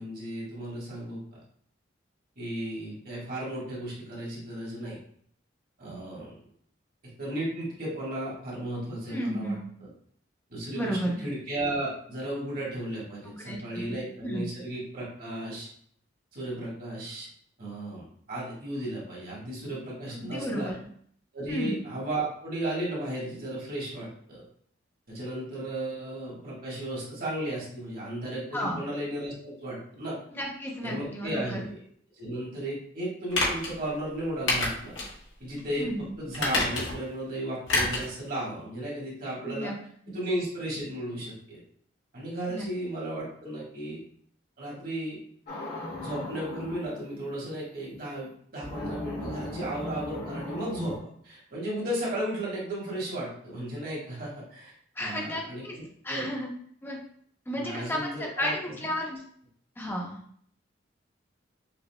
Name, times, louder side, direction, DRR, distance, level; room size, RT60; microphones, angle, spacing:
voice 1, 0.0-1.4 2.4-5.0 5.8-6.4 7.2-9.6 10.5-15.7 16.3-17.3 17.6-20.7 21.3-24.4 25.1-30.2 30.8-31.8 32.2-34.9 35.4-39.7 40.1-41.6 42.1-44.0 44.6-45.2 46.0-51.0 51.2-54.7 55.0-56.3 57.5-58.5, right 1 dB, 50° right, -5 dB, 1.6 m, -34 dB
voice 2, 9.1-9.7 10.7-11.2 13.2-14.0 14.2-14.4 20.1-20.7 21.5-21.8 28.5-28.8 30.3-31.7 35.8-36.1 39.4-39.7 42.5-42.7 55.0-55.8 56.0-56.5 56.8-57.0 57.5-59.2 59.8-60.2, equal, 10° left, -1 dB, 0.7 m, -33 dB
sound 1, 33.3-33.7 34.5-35.1 35.5-35.6 36.3-37.1 37.7-38.1 38.4-38.5, left 2 dB, 80° left, 1.3 m, -27 dB
sound 2, 45.5-46.9 48.6-51.0, left 2 dB, 60° left, 1.3 m, -37 dB
5.8 x 2.6 x 2.2 m, 0.62 s
head